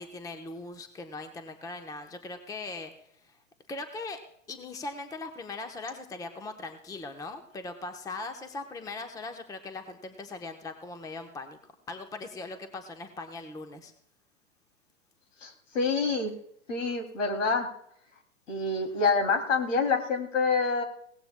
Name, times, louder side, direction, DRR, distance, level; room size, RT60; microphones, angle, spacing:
voice 1, 0.0-2.9 3.2-3.4 3.7-4.2 4.5-11.6 11.9-13.9, left 3 dB, 10° left, 7 dB, 0.9 m, -40 dB
voice 2, 15.4-16.3 16.7-17.7 18.5-20.8, left 4 dB, 75° left, 5 dB, 2.8 m, -27 dB
20.0 x 17.5 x 2.2 m, 0.70 s
hypercardioid pair, 115°, 39 cm